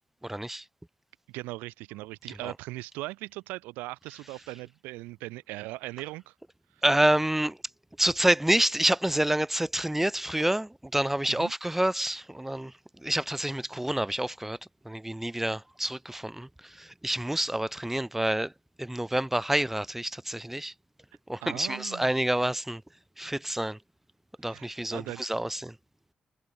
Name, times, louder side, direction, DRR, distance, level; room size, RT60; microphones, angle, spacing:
voice 1, 0.2-0.6 2.4-2.5 6.8-7.6 8.0-14.6 14.8-18.5 18.8-20.7 21.3-22.8 23.2-23.8 24.4-25.7, right 1 dB, 10° right, 0.8 m, -28 dB
voice 2, 1.3-6.3 6.8-6.9 11.3-11.5 21.4-22.1 24.4-25.2, right 21 dB, 85° right, 1.7 m, -39 dB
hypercardioid pair, 40°, 3 cm